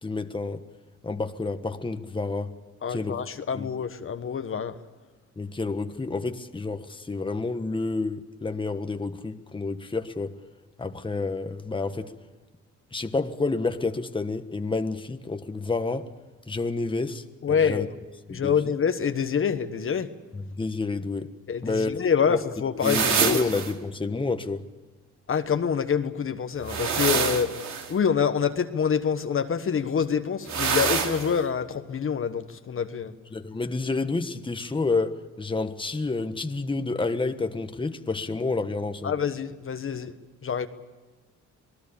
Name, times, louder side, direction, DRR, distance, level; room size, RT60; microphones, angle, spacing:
voice 1, 0.0-0.6 1.0-2.5 2.9-3.2 3.5-3.7 5.4-10.3 10.8-12.1 12.9-16.1 16.5-17.9 18.3-18.5 20.3-21.3 21.6-21.9 22.3-22.4 22.8-24.6 33.3-39.1, left 3 dB, 15° left, 1.4 m, -29 dB
voice 2, 2.8-4.7 17.4-17.9 18.3-20.1 21.5-23.4 25.3-27.5 27.9-33.1 39.0-40.1 40.4-40.7, left 7 dB, 45° left, 1.3 m, -26 dB
sound 1, 22.8-23.7 26.6-27.9 30.5-31.3, right 6 dB, 65° right, 3.0 m, -26 dB
26.5 x 19.0 x 7.0 m
cardioid pair, 90°, 30 cm